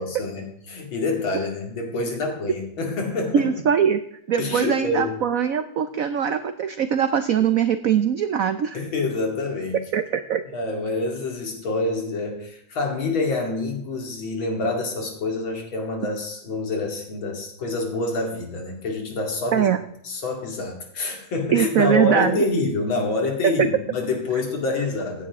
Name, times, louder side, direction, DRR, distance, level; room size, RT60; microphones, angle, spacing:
voice 1, 0.0-3.5 4.4-5.1 8.7-9.8 10.5-19.7 20.0-25.3, left 3 dB, 75° left, 2 dB, 3.1 m, -27 dB
voice 2, 3.3-4.0 4.3-8.8 9.9-10.4 19.5-19.8 21.5-22.4 23.4-23.7, right 8 dB, 85° right, 10 dB, 0.7 m, -21 dB
15.5 x 10.0 x 3.6 m, 0.74 s
omnidirectional pair, 2.2 m